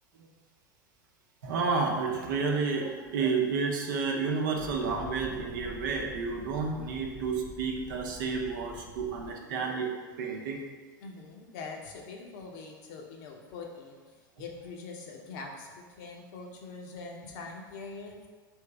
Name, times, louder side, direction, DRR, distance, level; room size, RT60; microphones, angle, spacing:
voice 1, 1.4-9.9 10.2-10.6, right 4 dB, 65° right, 1 dB, 0.8 m, -30 dB
sound 1, 4.5-9.3, left 2 dB, 15° left, 0.9 m, -46 dB
voice 2, 11.0-14.0 14.4-18.3, left 4 dB, 60° left, 1 dB, 0.8 m, -43 dB
3.6 x 3.0 x 4.6 m, 1.4 s
hypercardioid pair, 90°, 11 cm